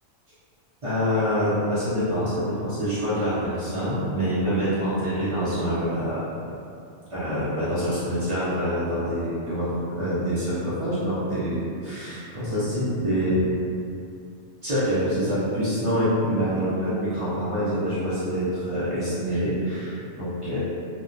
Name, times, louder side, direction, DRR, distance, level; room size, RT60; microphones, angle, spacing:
voice 1, 0.8-6.5 7.1-9.7 9.9-13.3 14.6-20.6, equal, 40° right, -12 dB, 0.5 m, -26 dB
2.3 x 2.1 x 2.5 m, 2.5 s
omnidirectional pair, 1.3 m